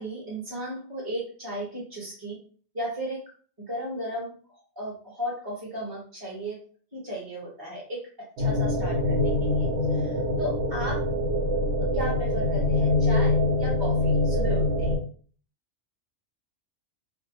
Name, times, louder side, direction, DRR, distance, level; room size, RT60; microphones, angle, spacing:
voice 1, 0.0-2.4 2.7-3.2 3.6-4.4 4.7-6.6 6.9-11.1 11.9-15.0, equal, 20° right, -6 dB, 0.8 m, -35 dB
sound 1, 8.4-15.0, left 2 dB, 80° right, 1.0 m, -24 dB
2.5 x 2.0 x 2.8 m, 0.44 s
omnidirectional pair, 1.3 m